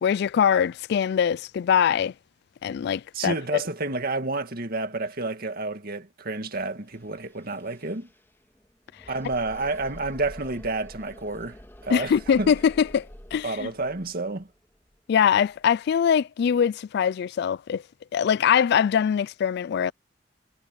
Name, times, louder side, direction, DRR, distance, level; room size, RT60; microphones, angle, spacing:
voice 1, 0.0-2.1 2.6-3.6 11.9-13.7 15.1-17.8 18.1-19.9, left 8 dB, 60° left, 0.3 m, -23 dB
voice 2, 3.1-8.1 9.1-11.6 11.8-12.1 12.4-12.5 13.4-14.5, right 3 dB, 55° right, 2.1 m, -30 dB
sound 1, 6.9-15.7, equal, 15° left, 2.9 m, -47 dB
head